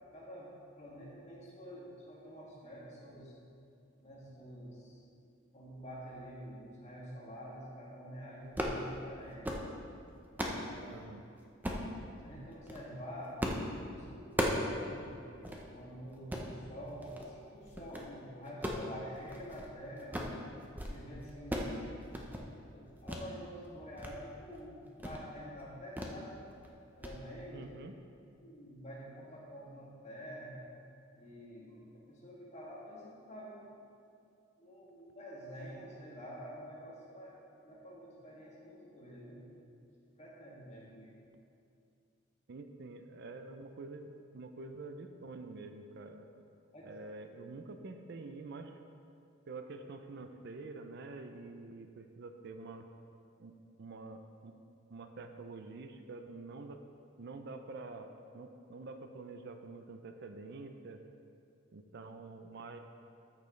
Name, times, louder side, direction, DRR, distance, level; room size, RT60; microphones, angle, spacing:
voice 1, 0.1-3.3 4.0-5.0 5.5-9.4 10.4-11.0 12.2-13.4 13.7-15.2 15.7-20.4 20.9-21.7 22.7-26.3 27.0-27.6 28.4-30.6 31.2-33.6 34.6-37.4 37.6-39.6 40.1-41.1 46.7-46.9, equal, 35° left, -6 dB, 2.1 m, -48 dB
sound 1, 8.4-8.8 9.3-9.7 10.1-10.6 11.6-11.9 12.5-12.8 13.4-13.7 14.0-14.7 15.0-15.1 15.4-15.6 16.1-16.5 17.0-17.3 17.7-18.1 18.5-19.7 20.0-20.4 20.6-21.0 21.2-21.8 22.0-22.5 23.1-23.3 23.7-24.1 24.5-24.6 25.0-25.2 26.0-26.2 26.5-26.7 27.0-27.2, equal, 10° right, 0.7 m, -37 dB
voice 2, 10.9-11.2 27.5-27.9 42.5-46.3 46.8-48.8 49.5-52.9 53.4-54.5 54.9-56.8 57.2-61.0 61.7-62.8, right 3 dB, 55° right, 7 dB, 0.5 m, -47 dB
13.5 x 6.7 x 3.2 m, 2.5 s
head